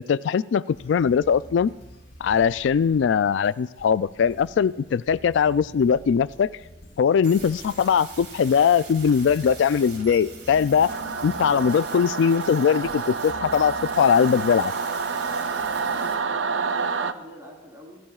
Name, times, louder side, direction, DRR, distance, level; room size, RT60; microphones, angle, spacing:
voice 1, 0.0-1.7 2.2-6.5 7.0-10.9 11.2-14.7, left 7 dB, 85° left, 17 dB, 0.3 m, -21 dB
sound 1, 0.7-16.4, equal, 55° left, 4.1 m, -47 dB
Glitch - Star OCean, 7.2-16.1, right 5 dB, 65° right, 3.6 m, -43 dB
Singing / Musical instrument, 10.9-17.1, right 5 dB, 85° right, 0.6 m, -28 dB
voice 2, 15.8-18.0, equal, 20° right, -2 dB, 3.8 m, -45 dB
24.0 x 15.0 x 2.4 m, 1.1 s
head